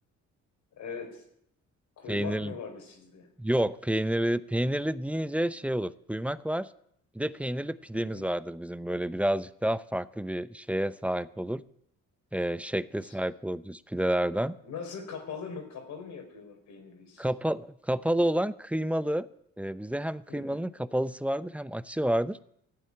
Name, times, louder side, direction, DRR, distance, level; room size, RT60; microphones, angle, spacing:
voice 1, 0.8-1.2 2.0-3.3 7.9-8.2 13.0-13.1 14.6-17.3 20.3-20.6, left 5 dB, 75° left, 4 dB, 4.6 m, -41 dB
voice 2, 2.1-2.5 3.4-6.7 7.1-11.6 12.3-14.6 17.2-19.3 19.6-22.4, right 1 dB, 5° right, 16 dB, 0.6 m, -29 dB
14.5 x 8.5 x 9.8 m, 0.73 s
cardioid pair, 90°, 30 cm